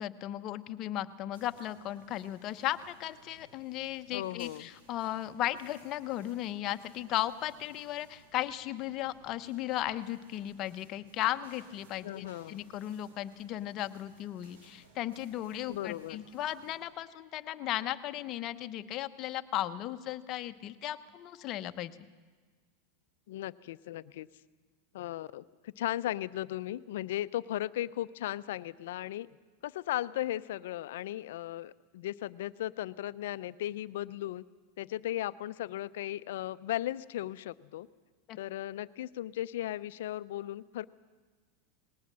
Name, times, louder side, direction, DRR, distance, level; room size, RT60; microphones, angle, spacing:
voice 1, 0.0-22.0 38.3-38.4, left 13 dB, 45° left, 10 dB, 1.0 m, -36 dB
sound 1, 1.3-16.8, right 3 dB, 80° right, 4.5 m, -61 dB
voice 2, 4.1-4.7 12.0-12.6 15.7-16.3 23.3-24.3 24.9-29.3 29.6-34.4 34.8-37.9 38.4-40.8, left 13 dB, 75° left, 17 dB, 0.6 m, -36 dB
20.0 x 18.0 x 7.6 m, 1.5 s
hypercardioid pair, 115°, 0 cm